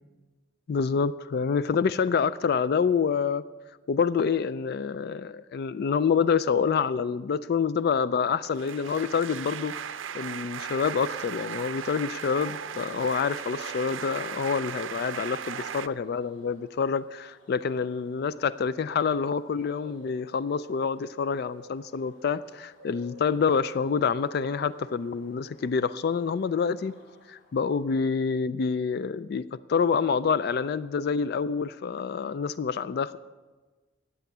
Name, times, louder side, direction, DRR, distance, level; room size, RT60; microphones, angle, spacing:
voice 1, 0.7-3.4 3.9-9.7 10.1-26.9 27.3-33.2, left 6 dB, 55° left, 15 dB, 0.3 m, -27 dB
sound 1, 8.4-15.9, right 8 dB, 75° right, 0.5 m, -37 dB
sound 2, 13.4-27.9, left 2 dB, 75° left, 2.8 m, -54 dB
14.0 x 9.4 x 6.7 m, 1.3 s
head